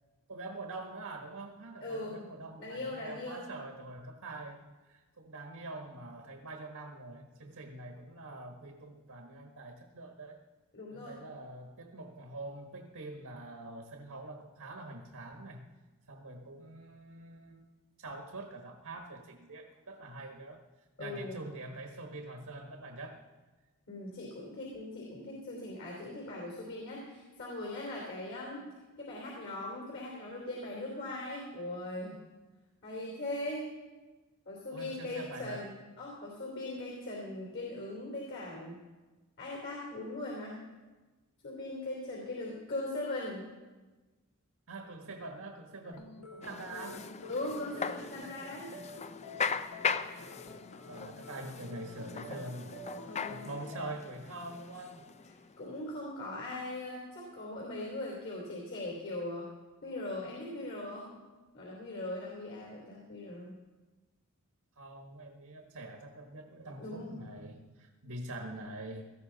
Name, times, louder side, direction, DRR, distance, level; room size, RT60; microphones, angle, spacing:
voice 1, 0.3-10.4 10.9-15.7 16.1-17.6 18.0-20.6 21.0-23.3 34.7-35.7 44.7-47.1 50.2-55.0 64.8-69.1, right 2 dB, 80° right, 3 dB, 1.3 m, -45 dB
voice 2, 1.8-2.2 2.6-3.5 9.3-9.4 10.7-11.2 21.0-21.4 23.9-28.6 29.0-32.2 32.8-33.7 34.4-38.8 39.4-40.6 41.4-43.4 47.3-48.7 53.1-53.5 55.6-59.5 59.8-61.1 61.5-63.5 66.8-67.2, left 2 dB, 60° left, -2 dB, 3.4 m, -40 dB
sound 1, 45.9-53.9, left 3 dB, 90° left, 1.3 m, -49 dB
sound 2, 46.4-55.7, left 5 dB, 30° left, 0.5 m, -39 dB
18.5 x 14.5 x 4.0 m, 1.2 s
head